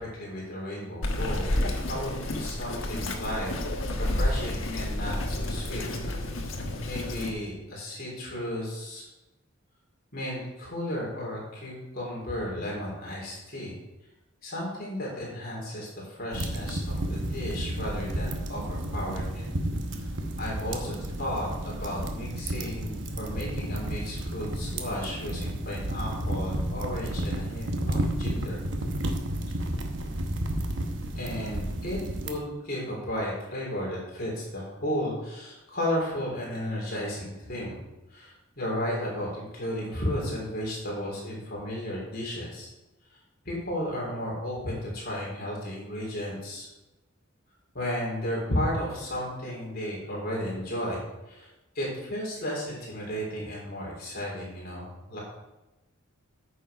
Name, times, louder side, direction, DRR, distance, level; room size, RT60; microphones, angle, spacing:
voice 1, 0.0-5.9 6.8-9.1 10.1-13.8 14.4-19.5 20.4-28.6 31.2-32.0 32.2-42.7 43.5-46.7 47.7-51.5 51.8-55.2, left 1 dB, 45° left, -4 dB, 3.7 m, -34 dB
Bird vocalization bird call bird song, 1.0-7.3, left 1 dB, 75° left, 1.3 m, -30 dB
sound 1, 16.3-32.3, right 1 dB, 60° right, 1.0 m, -32 dB
9.0 x 6.7 x 5.1 m, 1.0 s
head